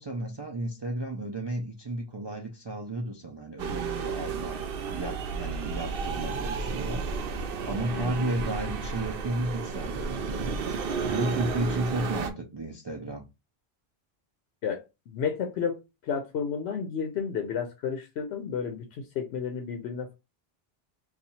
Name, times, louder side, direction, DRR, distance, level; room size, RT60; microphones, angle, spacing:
voice 1, 0.0-4.6 4.9-7.1 7.7-10.5 11.1-13.2, right 1 dB, 40° right, 0.4 m, -33 dB
sound 1, 3.6-12.3, right 5 dB, 65° right, 0.8 m, -32 dB
voice 2, 7.9-8.2 14.6-15.8 16.0-20.1, left 6 dB, 90° left, 0.9 m, -32 dB
2.7 x 2.4 x 4.1 m
omnidirectional pair, 1.0 m